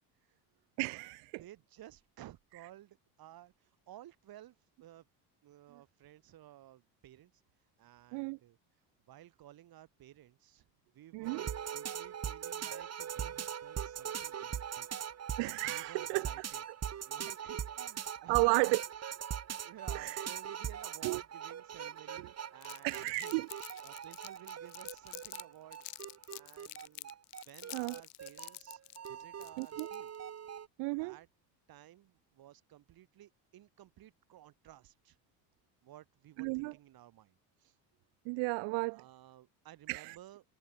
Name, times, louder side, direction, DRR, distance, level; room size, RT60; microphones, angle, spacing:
voice 1, 0.8-1.4 8.1-8.4 11.1-11.5 15.4-16.3 18.3-18.8 19.9-20.2 21.0-21.2 22.8-23.5 27.7-27.9 29.6-29.9 30.8-31.1 36.4-36.7 38.3-39.0 39.9-40.2, right 29 dB, 80° right, 1.0 m, -33 dB
voice 2, 1.4-5.1 5.4-7.4 7.8-8.6 9.1-10.7 10.9-14.9 15.7-18.6 19.6-23.4 23.8-25.8 26.3-27.1 27.5-28.8 29.1-30.1 31.0-31.3 31.7-35.2 35.8-37.8 38.9-40.4, right 13 dB, 60° right, 6.1 m, -55 dB
sound 1, 11.2-30.7, right 9 dB, 40° right, 2.4 m, -41 dB
Crumpling crinkling, 22.6-25.4 25.7-30.2, left 23 dB, 80° left, 7.2 m, -48 dB
cardioid pair, 105°, 41 cm